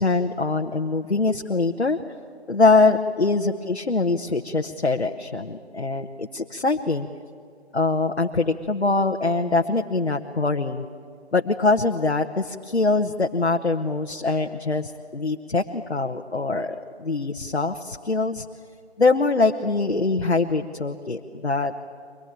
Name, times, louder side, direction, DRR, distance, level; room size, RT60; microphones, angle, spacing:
voice 1, 0.0-2.0 2.5-7.1 7.7-10.9 11.3-18.5 19.0-21.7, left 3 dB, 70° left, 3 dB, 1.2 m, -23 dB
23.5 x 19.0 x 8.9 m, 2.2 s
figure-of-eight pair, 180°, 33 cm